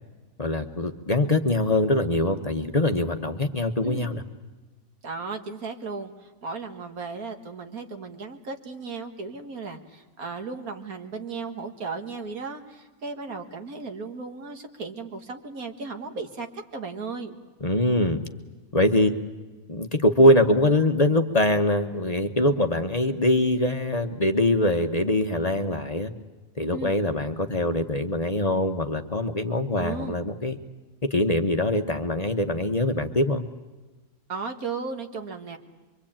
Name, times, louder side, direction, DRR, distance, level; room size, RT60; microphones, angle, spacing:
voice 1, 0.4-4.2 17.6-18.2 18.7-19.1 19.7-26.1 26.6-30.6 31.1-33.4, left 1 dB, 30° left, 6 dB, 1.0 m, -23 dB
voice 2, 5.0-17.4 26.7-27.0 29.8-30.2 34.3-35.6, right 4 dB, 80° right, 5 dB, 2.2 m, -35 dB
25.0 x 24.0 x 8.8 m, 1.2 s
omnidirectional pair, 1.5 m